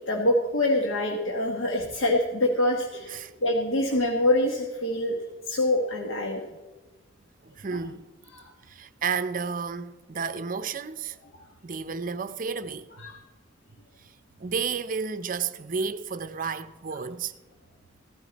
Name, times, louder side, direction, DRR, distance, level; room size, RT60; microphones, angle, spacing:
voice 1, 0.0-5.1 5.4-6.4 7.7-7.8 8.3-8.5 11.3-11.4 13.0-13.2, left 1 dB, 80° left, 1.3 m, -25 dB
voice 2, 3.1-3.4 7.4-8.1 8.7-11.2 11.6-13.1 14.0-14.1 14.4-17.3, right 5 dB, 45° right, 0.6 m, -32 dB
15.5 x 12.0 x 4.1 m
head